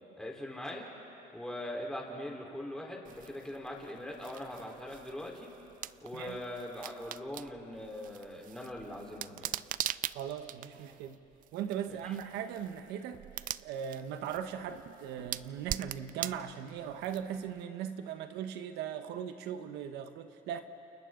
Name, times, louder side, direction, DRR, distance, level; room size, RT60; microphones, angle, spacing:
voice 1, 0.2-0.9 1.3-5.5 6.0-9.5 12.0-12.1, left 1 dB, 5° left, -2 dB, 4.1 m, -41 dB
sound 1, 3.0-17.6, right 13 dB, 55° right, 0.4 m, -43 dB
voice 2, 10.1-11.2 11.5-13.3 13.6-20.6, right 9 dB, 90° right, 8 dB, 1.2 m, -39 dB
29.5 x 29.0 x 3.9 m, 3.0 s
cardioid pair, 110°, 17 cm